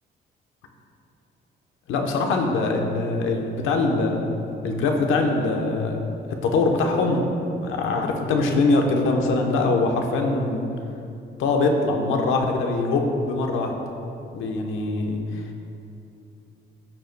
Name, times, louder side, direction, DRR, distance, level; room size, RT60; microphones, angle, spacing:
voice 1, 1.9-4.2 4.6-6.0 6.4-7.2 7.6-10.7 11.4-13.7 14.3-15.7, left 3 dB, 85° left, 2 dB, 1.0 m, -23 dB
13.5 x 6.6 x 2.2 m, 2.7 s
cardioid pair, 90°, 20 cm